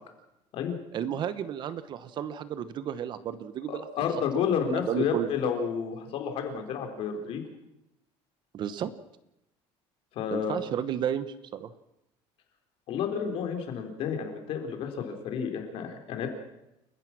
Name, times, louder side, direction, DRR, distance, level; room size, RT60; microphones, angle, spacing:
voice 1, 0.9-3.8 4.4-5.3 8.5-8.9 10.3-11.7, right 9 dB, 40° right, 13 dB, 1.1 m, -32 dB
voice 2, 3.7-7.4 10.1-10.6 12.9-16.3, left 7 dB, 55° left, 4 dB, 4.3 m, -30 dB
30.0 x 15.0 x 6.2 m, 0.87 s
cardioid pair, 160°, 12 cm